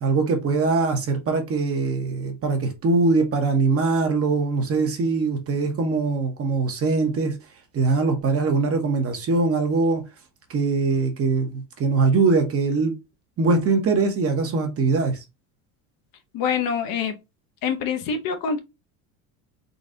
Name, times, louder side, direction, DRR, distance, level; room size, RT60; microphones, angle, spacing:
voice 1, 0.0-7.3 7.7-10.0 10.5-12.9 13.4-15.1, right 3 dB, 35° right, 1.0 m, -22 dB
voice 2, 16.3-17.2 17.6-18.6, left 6 dB, 55° left, 0.9 m, -25 dB
4.0 x 2.3 x 3.8 m
cardioid pair, 120°, 40 cm